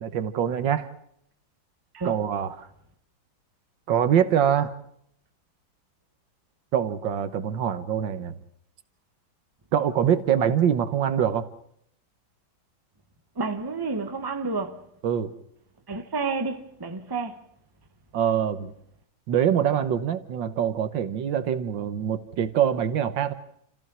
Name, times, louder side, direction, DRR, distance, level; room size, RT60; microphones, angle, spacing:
voice 1, 0.0-0.9 2.0-2.7 3.9-4.7 6.7-8.4 9.7-11.5 15.0-15.3 18.1-18.7 19.3-23.3, right 9 dB, 75° right, 1.7 m, -24 dB
voice 2, 13.4-14.9 15.9-17.4, right 4 dB, 15° right, 1.1 m, -30 dB
29.0 x 15.0 x 6.2 m
omnidirectional pair, 2.1 m